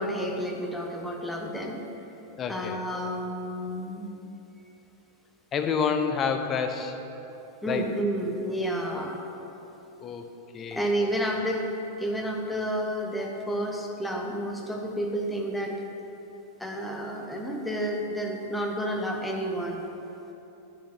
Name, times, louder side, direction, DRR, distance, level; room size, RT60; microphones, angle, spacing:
voice 1, 0.0-1.8 2.5-4.1 7.6-9.2 10.7-11.6 12.0-15.7 16.6-19.9, equal, 5° left, 1 dB, 1.2 m, -30 dB
voice 2, 2.4-2.8 5.5-6.9 7.7-7.8 10.0-10.3 10.5-10.9, left 6 dB, 25° left, 6 dB, 0.8 m, -28 dB
10.0 x 6.0 x 5.9 m, 3.0 s
figure-of-eight pair, 90°, 0 cm